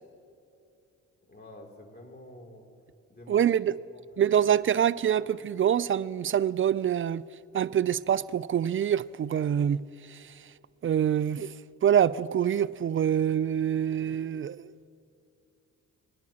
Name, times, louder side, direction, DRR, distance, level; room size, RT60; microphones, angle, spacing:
voice 1, 1.3-2.7 3.1-3.4 3.9-5.1 5.5-5.6, left 1 dB, 25° left, 3.0 m, -49 dB
voice 2, 3.3-3.8 4.2-7.2 7.5-9.8 10.1-10.3 10.8-11.5 11.8-14.7, right 9 dB, 35° right, 0.4 m, -25 dB
22.0 x 10.5 x 2.9 m
hypercardioid pair, 45°, 38 cm